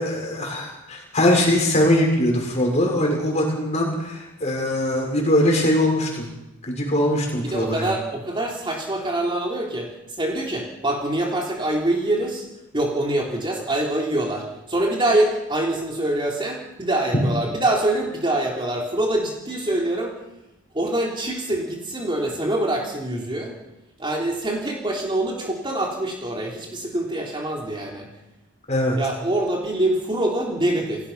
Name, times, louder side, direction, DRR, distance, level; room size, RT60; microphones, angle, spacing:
voice 1, 0.0-6.3 6.7-7.9 28.7-29.0, left 1 dB, 30° left, 0 dB, 6.6 m, -21 dB
voice 2, 7.3-9.9 10.2-12.5 12.7-20.1 20.7-23.5 24.0-28.1 29.0-31.1, right 1 dB, 20° right, -1 dB, 3.5 m, -25 dB
30.0 x 17.0 x 5.8 m, 0.94 s
head